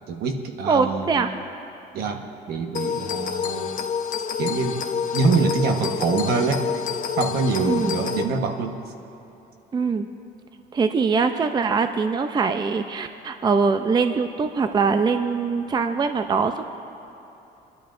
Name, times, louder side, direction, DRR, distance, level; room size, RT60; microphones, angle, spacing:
voice 1, 0.1-1.2 1.9-3.8 4.4-4.8 5.1-6.7 7.2-8.8, right 4 dB, 70° right, 4 dB, 1.2 m, -25 dB
voice 2, 0.7-1.3 7.7-7.9 9.7-10.1 10.7-16.6, right 5 dB, 25° right, 8 dB, 0.5 m, -22 dB
sound 1, 2.8-8.2, left 7 dB, 50° left, 0.8 m, -28 dB
22.0 x 12.0 x 2.6 m, 3.0 s
cardioid pair, 110°, 17 cm